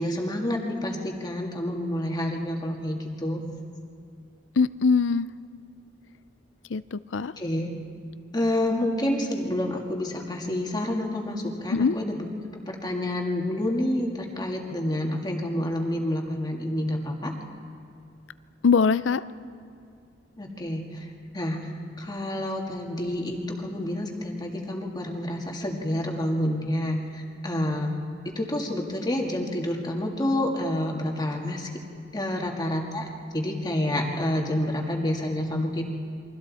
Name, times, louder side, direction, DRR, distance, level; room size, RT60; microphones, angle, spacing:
voice 1, 0.0-3.5 7.4-7.7 8.3-12.2 12.7-17.3 20.4-21.1 21.3-21.7 22.0-28.0 28.3-31.7 32.1-35.9, left 1 dB, 25° left, 1 dB, 2.1 m, -28 dB
voice 2, 4.6-5.3 6.7-7.3 11.7-12.0 18.6-19.2, left 5 dB, 75° left, 15 dB, 0.5 m, -22 dB
29.0 x 23.5 x 4.2 m, 2.4 s
head